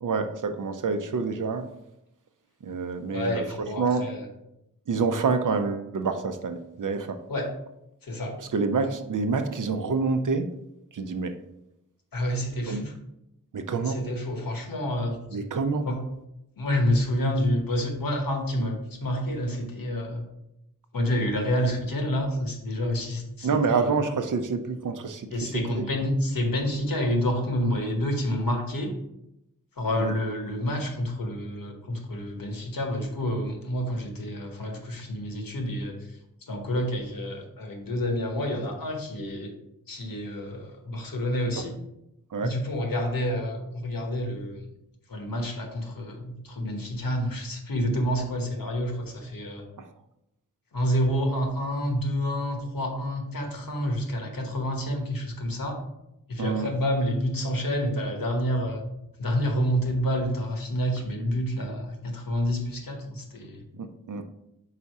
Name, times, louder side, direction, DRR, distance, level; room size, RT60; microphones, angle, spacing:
voice 1, 0.0-1.7 2.6-3.4 3.8-4.0 4.9-7.2 8.5-10.5 10.9-11.3 12.7-12.8 13.5-14.0 15.3-15.9 23.4-25.5 25.8-25.9 30.0-30.1 42.3-42.5 56.4-56.7 64.1-64.2, right 4 dB, 65° right, 8 dB, 0.6 m, -27 dB
voice 2, 3.1-4.3 7.3-7.5 8.0-8.4 12.1-12.9 13.8-15.2 15.8-16.0 16.6-20.3 20.9-23.9 25.3-28.9 29.8-36.2 36.5-39.5 39.9-41.8 42.4-44.7 45.1-49.7 50.7-55.8 56.3-58.8 59.2-63.6, equal, 80° left, 3 dB, 1.2 m, -28 dB
4.8 x 4.2 x 4.7 m, 0.85 s
wide cardioid pair, 85°, 34 cm